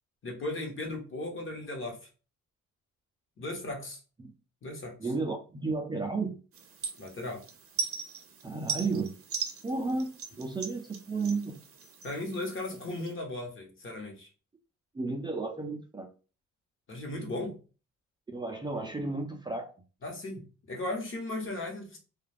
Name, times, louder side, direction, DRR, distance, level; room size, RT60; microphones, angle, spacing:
voice 1, 0.2-2.0 3.4-4.0 4.6-4.9 7.0-7.4 12.0-14.3 16.9-17.6 20.0-22.0, left 2 dB, 45° left, 2 dB, 1.0 m, -36 dB
voice 2, 5.0-6.4 8.4-9.1 9.6-10.1 10.4-11.6 14.9-16.1 18.3-19.7, right 3 dB, 15° right, 2 dB, 0.4 m, -32 dB
sound 1, 6.5-13.1, right 5 dB, 50° right, 0.7 m, -39 dB
2.4 x 2.3 x 3.3 m, 0.34 s
cardioid pair, 90°, 30 cm